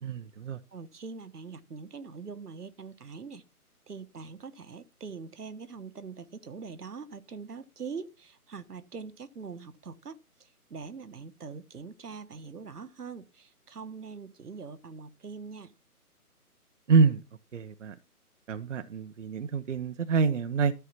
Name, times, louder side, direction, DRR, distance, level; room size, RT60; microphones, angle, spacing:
voice 1, 0.0-0.6 16.9-17.2 17.5-18.0 18.5-20.7, right 5 dB, 55° right, 0.8 m, -26 dB
voice 2, 0.7-3.4 3.9-15.7, right 5 dB, 80° right, 1.3 m, -43 dB
13.0 x 4.8 x 5.8 m
figure-of-eight pair, 150°, 46 cm